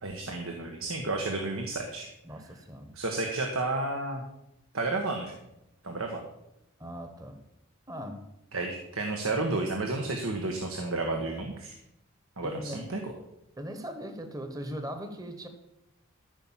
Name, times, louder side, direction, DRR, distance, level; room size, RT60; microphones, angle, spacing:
voice 1, 0.0-2.1 2.9-4.2 4.7-5.4 5.8-6.2 8.5-11.8 12.4-13.1, right 2 dB, 85° right, 3 dB, 1.4 m, -31 dB
voice 2, 2.2-2.9 6.8-7.4 7.9-8.3 12.4-13.1 13.6-15.5, equal, 15° right, 6 dB, 1.1 m, -39 dB
14.0 x 5.6 x 7.4 m, 0.85 s
head